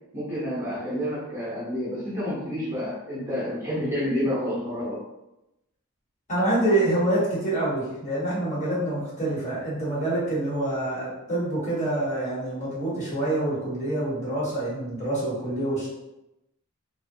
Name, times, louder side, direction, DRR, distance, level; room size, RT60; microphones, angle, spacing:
voice 1, 0.1-5.0, equal, 10° right, -8 dB, 0.7 m, -29 dB
voice 2, 6.3-15.9, right 1 dB, 35° left, -8 dB, 1.2 m, -26 dB
3.0 x 2.1 x 2.6 m, 0.91 s
head